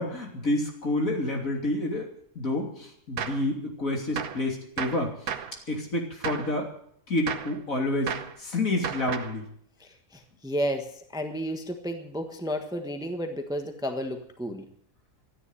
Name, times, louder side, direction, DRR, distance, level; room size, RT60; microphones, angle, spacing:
voice 1, 0.0-2.1 2.4-5.1 5.7-6.7 7.1-8.1 8.4-9.5, left 2 dB, 60° left, 1 dB, 3.5 m, -28 dB
Gunshot gunfire, 3.2-3.5 4.2-4.5 4.8-5.6 6.2-6.5 7.3-7.6 8.1-8.4 8.8-9.4, right 8 dB, 70° right, 1.4 m, -33 dB
voice 2, 9.8-14.6, equal, 5° right, 5 dB, 1.2 m, -32 dB
13.0 x 9.7 x 9.9 m, 0.67 s
omnidirectional pair, 1.6 m